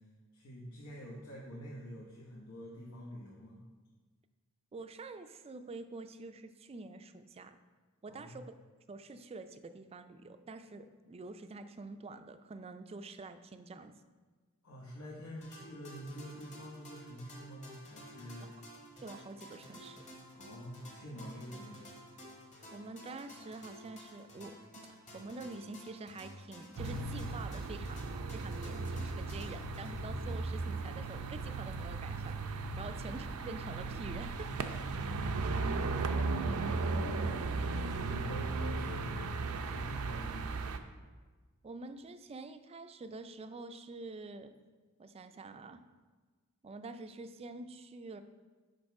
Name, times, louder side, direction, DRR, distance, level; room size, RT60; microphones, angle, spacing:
voice 1, 0.3-3.6 8.1-8.4 14.6-18.5 20.3-22.0 32.8-33.0 36.5-40.5, equal, 85° left, -4 dB, 1.2 m, -46 dB
voice 2, 4.7-7.6 8.0-8.4 8.9-13.9 18.4-18.6 19.0-20.0 22.7-24.6 24.9-34.5 41.6-44.5 45.0-45.8 46.6-48.2, right 3 dB, 30° right, 9 dB, 0.4 m, -47 dB
sound 1, 15.4-30.8, equal, 35° left, 1.5 m, -53 dB
sound 2, 26.8-40.8, right 3 dB, 90° right, 0.5 m, -36 dB
6.4 x 5.3 x 4.6 m, 1.4 s
head